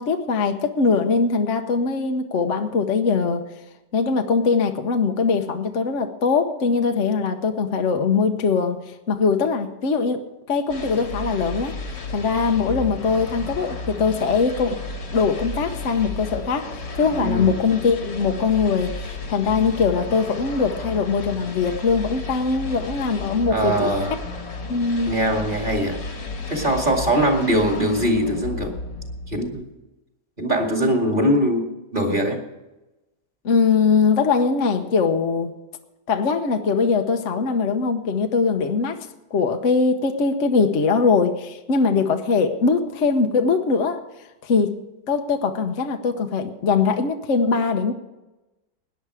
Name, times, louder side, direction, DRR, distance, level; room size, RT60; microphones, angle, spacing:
voice 1, 0.0-3.4 3.9-8.8 9.1-11.8 12.1-14.8 15.1-16.7 16.9-23.9 24.7-25.1 33.4-35.5 36.1-39.1 39.3-44.0 44.4-44.8 45.1-47.9, left 5 dB, 50° left, 5 dB, 1.2 m, -21 dB
sound 1, 10.7-29.7, left 3 dB, 80° left, 2.8 m, -33 dB
voice 2, 17.2-17.5 23.5-24.2 25.1-26.0 26.5-28.7 29.3-29.6 30.4-31.7 31.9-32.4, right 1 dB, 30° right, 2 dB, 2.5 m, -21 dB
18.0 x 10.5 x 4.9 m, 1.0 s
omnidirectional pair, 1.9 m